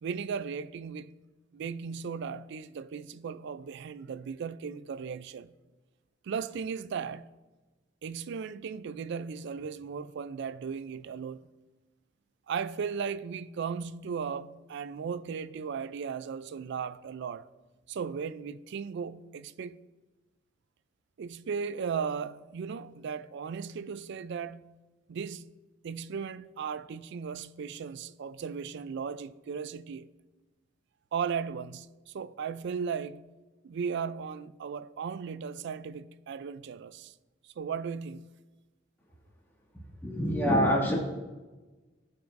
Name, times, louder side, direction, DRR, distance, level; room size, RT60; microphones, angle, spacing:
voice 1, 0.0-1.2 1.5-5.5 6.2-7.3 8.0-11.4 12.5-17.5 17.9-19.8 21.2-24.8 25.1-25.5 25.8-30.1 31.1-33.3 33.6-37.1 37.4-38.3, right 6 dB, 60° right, 0.3 m, -36 dB
voice 2, 40.0-40.9, equal, 10° left, 1.9 m, -25 dB
14.0 x 5.8 x 2.5 m
head